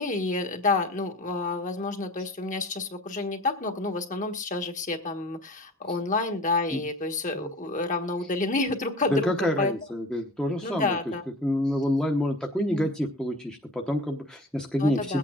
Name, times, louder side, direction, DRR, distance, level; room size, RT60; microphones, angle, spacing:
voice 1, 0.0-9.7 10.6-11.2 12.6-12.9 14.8-15.2, left 3 dB, 40° left, 5 dB, 1.4 m, -29 dB
voice 2, 9.1-11.0 11.4-15.2, left 1 dB, 5° left, 1 dB, 0.9 m, -27 dB
22.0 x 8.6 x 2.4 m, 0.27 s
head